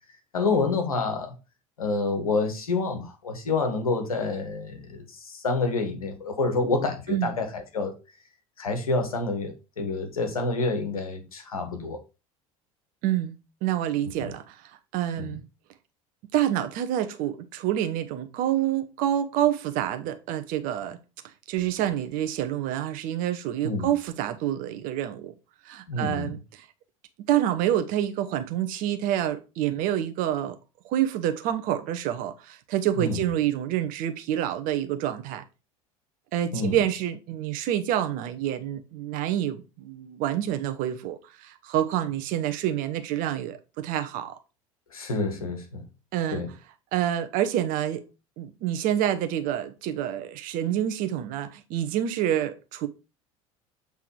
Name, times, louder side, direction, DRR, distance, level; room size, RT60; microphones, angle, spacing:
voice 1, 0.3-1.3 1.8-8.0 8.6-12.0 15.2-15.3 23.6-23.9 25.9-26.3 33.0-33.2 36.5-36.8 44.9-45.8 46.3-46.5, left 3 dB, 75° left, 1.3 m, -28 dB
voice 2, 13.0-13.3 13.6-14.6 14.9-15.4 16.3-21.0 21.5-25.3 25.6-26.6 27.3-30.6 30.8-35.4 36.3-44.4 46.1-46.4 46.9-48.0 48.4-52.9, right 11 dB, 50° right, 0.9 m, -27 dB
7.8 x 3.5 x 4.6 m
figure-of-eight pair, 70°, 18 cm